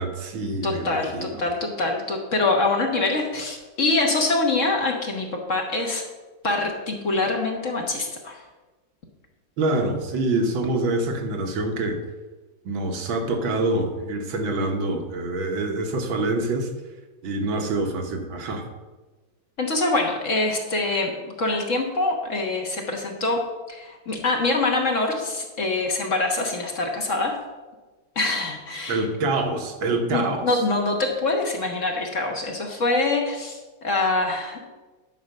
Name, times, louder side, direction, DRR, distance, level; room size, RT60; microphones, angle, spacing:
voice 1, 0.0-1.4 9.6-12.0 12.7-16.7 17.2-18.6 28.9-30.6, right 2 dB, 80° right, 3 dB, 2.0 m, -26 dB
voice 2, 0.6-6.0 6.4-8.4 19.6-27.4 28.1-29.0 30.1-34.7, left 2 dB, 45° left, 2 dB, 1.3 m, -25 dB
10.5 x 5.1 x 6.6 m, 1.2 s
omnidirectional pair, 2.1 m